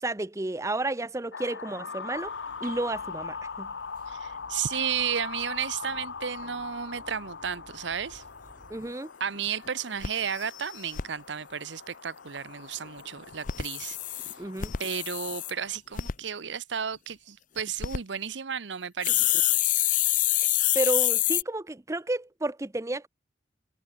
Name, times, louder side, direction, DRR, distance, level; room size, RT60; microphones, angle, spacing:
voice 1, 0.0-2.3 2.6-3.7 8.7-9.1 14.4-14.7 20.7-23.1, right 2 dB, 15° right, 0.6 m, -31 dB
sound 1, 1.3-15.8, left 5 dB, 70° left, 0.9 m, -41 dB
sound 2, 2.0-9.0, right 3 dB, 50° right, 7.3 m, -53 dB
voice 2, 4.1-8.2 9.2-14.3 14.8-19.3, right 7 dB, 75° right, 0.8 m, -33 dB
sound 3, 8.9-9.0 9.4-9.5 9.7-9.8 10.0-11.0 13.3-15.5 16.0-16.1 17.6-18.0 19.0-21.4, left 13 dB, 45° left, 0.7 m, -26 dB
head